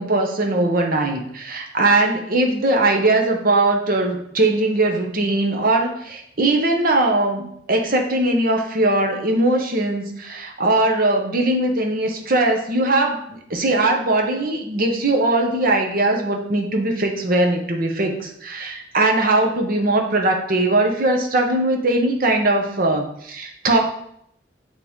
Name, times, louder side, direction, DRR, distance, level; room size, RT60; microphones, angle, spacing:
voice 1, 0.0-23.8, right 2 dB, 55° right, 2 dB, 1.0 m, -20 dB
9.5 x 3.3 x 3.6 m, 0.71 s
head